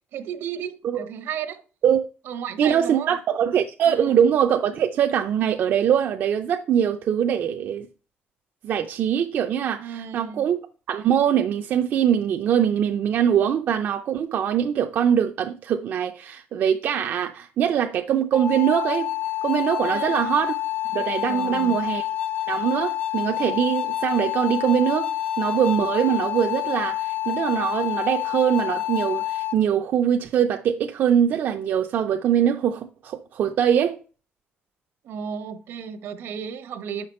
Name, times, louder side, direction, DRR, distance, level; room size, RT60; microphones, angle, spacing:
voice 1, 0.1-1.6 2.2-3.1 3.9-4.2 9.8-10.4 19.8-20.2 21.3-21.8 35.0-37.1, right 8 dB, 75° right, 1.0 m, -34 dB
voice 2, 2.6-7.9 8.6-10.6 10.9-19.1 19.4-20.5 20.9-22.0 22.5-25.1 25.4-34.0, right 9 dB, 55° right, 0.5 m, -22 dB
sound 1, 18.3-29.6, left 13 dB, 35° left, 0.6 m, -28 dB
7.1 x 5.9 x 4.2 m
cardioid pair, 165°, 4 cm